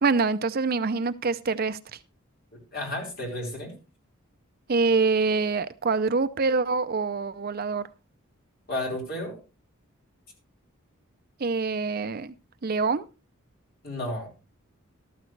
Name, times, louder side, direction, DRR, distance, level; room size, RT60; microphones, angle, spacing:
voice 1, 0.0-2.0 4.7-7.8 11.4-12.3 12.6-13.0, right 4 dB, 45° right, 13 dB, 0.5 m, -25 dB
voice 2, 2.5-3.7 8.7-9.4 13.8-14.3, left 1 dB, 45° left, -1 dB, 4.8 m, -32 dB
13.5 x 12.5 x 3.3 m, 0.30 s
head